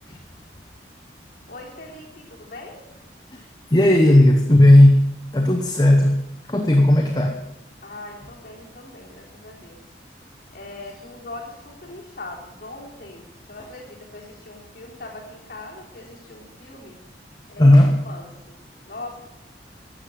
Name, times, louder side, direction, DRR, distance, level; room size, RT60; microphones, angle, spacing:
voice 1, 1.5-2.9 7.8-9.9 10.5-17.0 17.5-18.6 18.9-19.2, left 2 dB, 50° left, -2 dB, 3.5 m, -40 dB
voice 2, 3.7-5.0 5.3-6.2 6.5-7.4 17.6-18.0, left 1 dB, 20° left, 3 dB, 1.0 m, -14 dB
12.5 x 7.8 x 9.5 m, 0.93 s
head